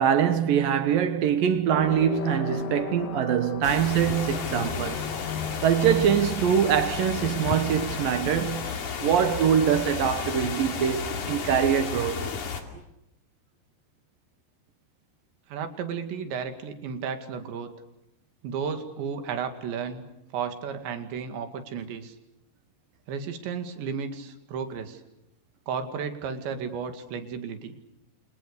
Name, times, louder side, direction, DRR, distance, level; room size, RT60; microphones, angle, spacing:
voice 1, 0.0-5.1 5.6-8.7 9.0-12.2, right 9 dB, 65° right, 2.6 m, -23 dB
sound 1, 1.7-7.8, left 6 dB, 70° left, 3.7 m, -36 dB
sound 2, 3.6-12.6, left 5 dB, 50° left, 3.6 m, -32 dB
voice 2, 15.5-17.7 18.4-20.1 20.3-22.2 23.1-25.0 25.7-27.8, right 6 dB, 85° right, 4.6 m, -33 dB
29.5 x 27.5 x 6.7 m
omnidirectional pair, 5.0 m